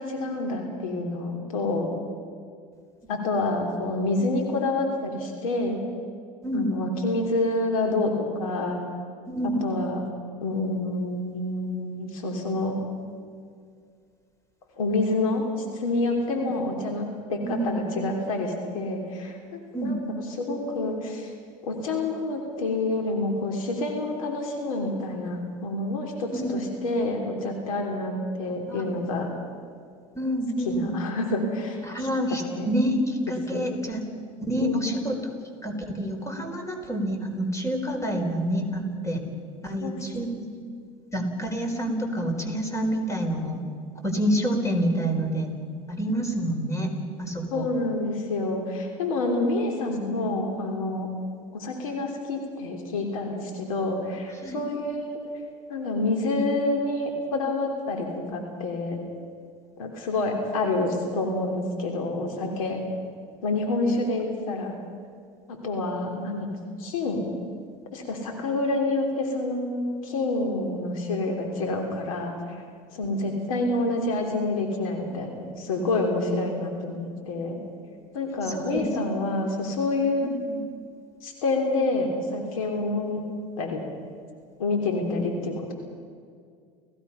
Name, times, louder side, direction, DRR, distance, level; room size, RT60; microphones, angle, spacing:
voice 1, 0.0-1.9 3.1-5.8 6.5-8.8 9.6-10.0 10.4-12.7 14.8-15.4 15.7-21.3 21.6-29.3 30.6-31.8 32.5-32.7 33.5-33.7 34.6-34.9 39.8-40.0 47.5-51.1 51.5-55.2 55.7-59.0 59.8-62.8 63.4-64.7 65.5-67.3 67.9-72.3 72.9-77.6 78.1-80.3 81.2-83.2 83.6-83.8 84.6-85.7, left 2 dB, 85° left, 2 dB, 3.2 m, -28 dB
voice 2, 9.3-9.6 17.4-17.7 19.7-19.9 26.3-26.5 28.7-29.0 30.1-30.9 31.8-34.0 34.4-35.1 35.6-39.2 39.6-40.5 41.1-43.6 44.0-45.5 45.9-46.9 47.2-47.7 54.4-54.6 78.3-78.9 80.2-80.6, equal, 15° left, 5 dB, 4.5 m, -28 dB
30.0 x 16.5 x 5.7 m, 2.2 s
hypercardioid pair, 85°, 17 cm